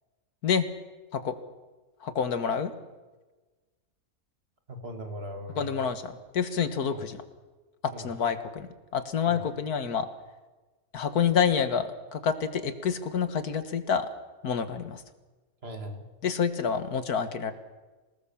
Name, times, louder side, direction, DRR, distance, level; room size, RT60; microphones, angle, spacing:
voice 1, 2.0-2.7 5.6-7.2 7.8-10.1 10.9-14.1 14.4-15.0 16.2-17.5, left 7 dB, 85° left, 10 dB, 2.0 m, -28 dB
voice 2, 4.7-5.9 6.9-7.0 7.9-8.1 9.2-9.4 15.6-16.1, equal, 40° right, 5 dB, 2.5 m, -39 dB
26.0 x 19.0 x 7.2 m, 1.2 s
omnidirectional pair, 1.6 m